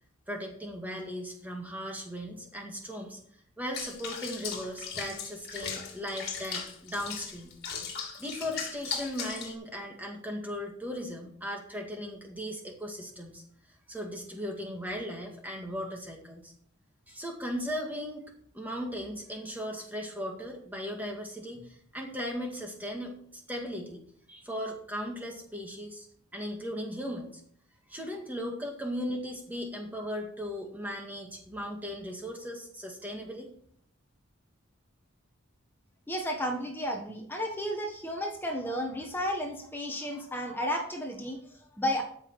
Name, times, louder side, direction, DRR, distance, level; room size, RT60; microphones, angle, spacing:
voice 1, 0.3-3.2 3.6-7.5 8.2-13.4 13.9-16.5 17.1-18.3 18.5-24.0 24.3-26.1 26.3-27.4 27.9-33.5, equal, 10° right, 1 dB, 1.9 m, -37 dB
Water / Bathtub (filling or washing), 3.7-9.5, left 6 dB, 50° left, 2.4 m, -38 dB
voice 2, 36.1-42.0, equal, 10° left, 2 dB, 1.3 m, -33 dB
13.0 x 6.0 x 4.7 m, 0.63 s
head